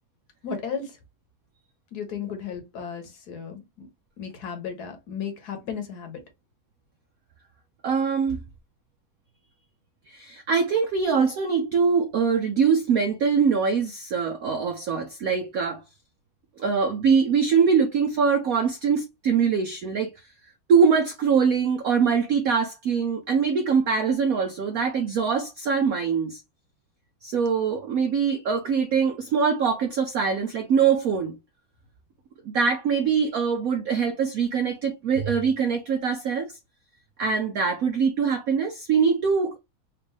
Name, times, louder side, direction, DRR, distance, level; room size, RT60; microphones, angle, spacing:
voice 1, 0.4-0.9 1.9-3.9 4.2-6.2, left 6 dB, 60° left, 1.3 m, -34 dB
voice 2, 7.8-8.4 10.1-15.8 16.6-20.1 20.7-26.4 27.2-31.4 32.4-36.5 37.2-39.6, right 6 dB, 75° right, 0.8 m, -23 dB
4.4 x 2.5 x 3.3 m
omnidirectional pair, 2.1 m